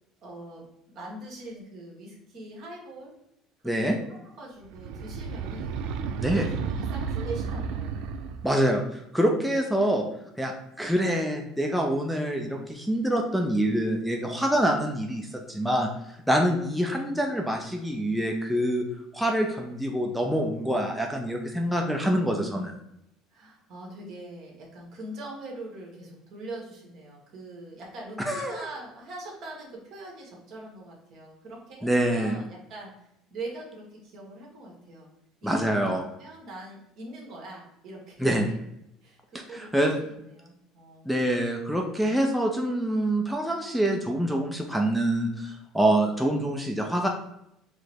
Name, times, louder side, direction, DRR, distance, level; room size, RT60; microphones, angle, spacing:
voice 1, 0.2-3.1 3.8-5.8 6.3-8.0 17.0-17.6 23.3-32.9 33.3-35.1 35.4-38.5 39.0-41.4, right 2 dB, 50° right, -2 dB, 1.3 m, -42 dB
voice 2, 3.6-4.0 6.2-6.5 8.4-10.0 10.4-15.9 16.3-18.8 19.1-22.7 28.3-28.6 31.8-32.4 35.4-36.0 38.2-38.5 39.5-39.9 41.1-47.1, right 1 dB, ahead, 1 dB, 0.4 m, -26 dB
sound 1, 4.6-8.6, right 5 dB, 70° right, 0.4 m, -32 dB
4.8 x 2.0 x 4.3 m, 0.82 s
cardioid pair, 145°, 0 cm